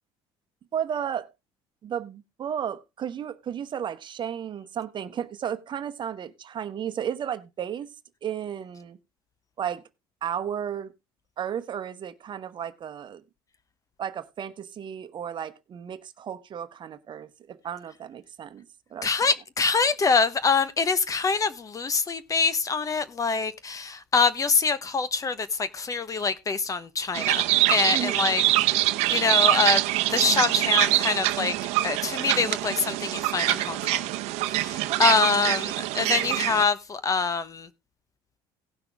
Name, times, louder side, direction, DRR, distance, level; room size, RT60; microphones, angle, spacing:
voice 1, 0.7-1.3 1.8-7.9 8.2-9.0 9.6-9.8 10.2-10.9 11.4-13.2 14.0-18.6 18.9-19.1 27.9-28.4 34.9-35.2, right 9 dB, 45° right, 1.1 m, -33 dB
voice 2, 19.0-28.7 29.1-29.8 30.1-31.5 31.8-34.1 34.5-37.7, left 4 dB, 30° left, 1.1 m, -25 dB
sound 1, 27.1-36.6, right 16 dB, 70° right, 0.8 m, -24 dB
17.5 x 5.9 x 3.5 m
supercardioid pair, 85°, 11 cm